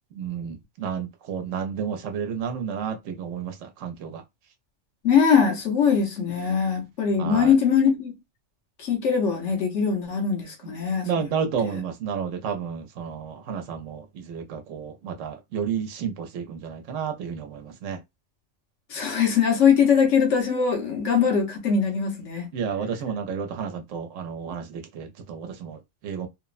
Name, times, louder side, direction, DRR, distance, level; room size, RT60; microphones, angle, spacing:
voice 1, 0.1-4.2 7.2-7.5 10.6-10.7 11.0-18.0 22.5-26.3, right 7 dB, 90° right, 0.9 m, -31 dB
voice 2, 5.0-8.2 8.8-11.1 18.9-22.5, left 6 dB, 75° left, 1.1 m, -21 dB
2.9 x 2.0 x 2.4 m
omnidirectional pair, 1.2 m